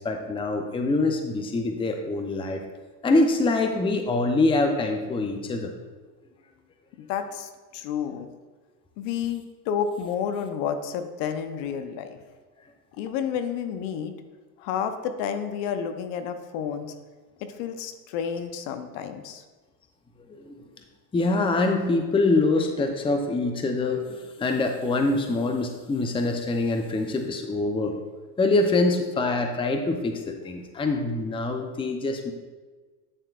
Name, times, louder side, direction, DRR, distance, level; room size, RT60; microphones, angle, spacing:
voice 1, 0.0-2.6 3.0-5.7 20.4-20.5 21.1-28.0 28.4-32.3, left 2 dB, 10° left, 4 dB, 0.6 m, -24 dB
voice 2, 7.0-8.3 9.0-12.2 13.0-14.1 14.6-16.9 17.4-19.4, left 7 dB, 60° left, 8 dB, 0.8 m, -30 dB
9.1 x 7.4 x 2.4 m, 1.3 s
hypercardioid pair, 95°, 50 cm